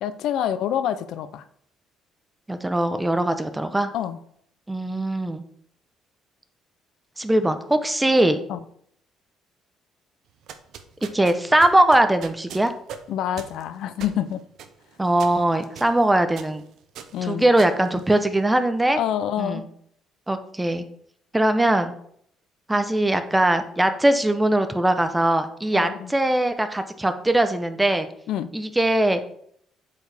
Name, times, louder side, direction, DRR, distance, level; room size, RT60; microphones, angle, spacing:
voice 1, 0.0-1.4 3.9-4.2 8.5-8.6 13.1-14.4 17.1-17.5 19.0-19.7 25.7-26.1 28.3-28.5, left 10 dB, 75° left, 13 dB, 0.5 m, -27 dB
voice 2, 2.5-3.9 4.7-5.4 7.2-8.4 11.1-12.7 15.0-16.6 17.2-19.0 19.4-19.6 20.3-20.8 21.3-21.9 22.7-28.1 28.5-29.2, right 1 dB, 10° right, 9 dB, 0.7 m, -21 dB
sound 1, 10.3-18.7, right 7 dB, 70° right, 0.7 m, -43 dB
8.0 x 4.7 x 3.4 m, 0.67 s
cardioid pair, 110°, 0 cm